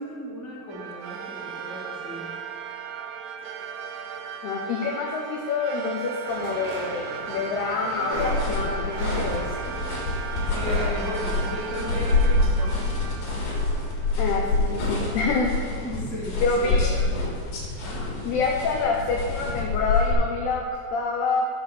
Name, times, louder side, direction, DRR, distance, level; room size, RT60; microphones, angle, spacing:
voice 1, 0.0-2.3 10.5-12.9 15.7-17.1 17.8-18.1, equal, ahead, -8 dB, 1.3 m, -35 dB
sound 1, 0.7-14.5, right 7 dB, 85° right, 3.5 m, -37 dB
voice 2, 4.4-9.5 14.2-15.6 16.4-16.9 18.2-21.5, left 4 dB, 80° left, 0 dB, 2.3 m, -27 dB
sound 2, 6.3-14.4 14.7-15.0, right 1 dB, 65° right, 4.8 m, -37 dB
sound 3, 8.1-20.1, left 3 dB, 55° left, 4.8 m, -26 dB
13.0 x 5.3 x 7.1 m, 2.1 s
omnidirectional pair, 5.9 m